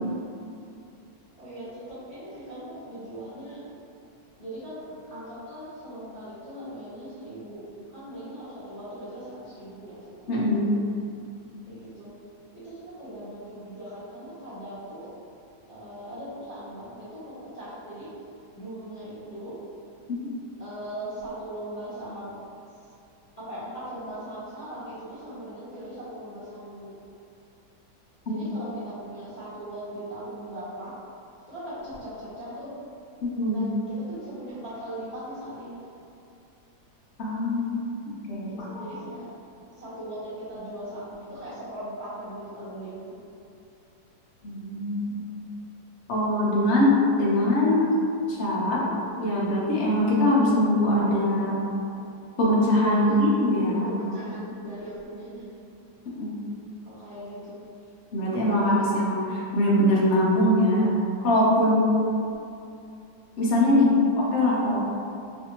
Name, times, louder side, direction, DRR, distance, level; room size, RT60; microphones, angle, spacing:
voice 1, 1.4-3.6 4.3-7.6 7.9-10.6 11.7-12.1 12.6-15.1 15.7-18.1 18.5-19.5 20.6-22.3 23.5-26.9 28.2-30.9 31.5-32.7 33.5-35.8 38.5-39.2 39.8-43.0 53.0-53.2 53.8-55.5 56.8-57.5 61.8-61.9, right 1 dB, 30° left, -15 dB, 0.8 m, -39 dB
voice 2, 10.3-10.7 33.4-33.6 37.2-38.9 44.4-45.2 46.1-48.0 48.3-48.9 49.2-51.6 52.4-54.2 56.2-56.3 58.1-60.9 61.2-61.8 63.4-64.8, left 1 dB, 75° left, -5 dB, 0.6 m, -22 dB
3.2 x 2.6 x 2.8 m, 2.6 s
omnidirectional pair, 2.0 m